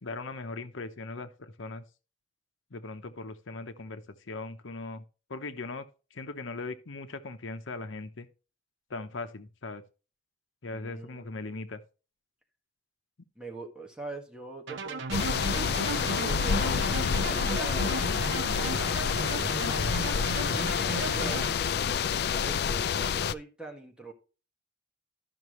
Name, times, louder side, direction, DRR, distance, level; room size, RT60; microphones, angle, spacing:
voice 1, 0.0-1.8 2.7-5.0 5.3-5.9 6.1-8.3 8.9-9.8 10.6-11.8, left 3 dB, 85° left, 0.9 m, -39 dB
voice 2, 10.7-11.6 13.3-16.6 17.1-18.0 18.4-19.9 20.4-21.5 21.7-24.1, right 3 dB, 5° right, 1.7 m, -43 dB
sound 1, 14.7-21.5, right 3 dB, 75° right, 0.8 m, -34 dB
sound 2, 15.1-23.3, left 7 dB, 55° left, 0.3 m, -28 dB
12.5 x 6.0 x 3.1 m
head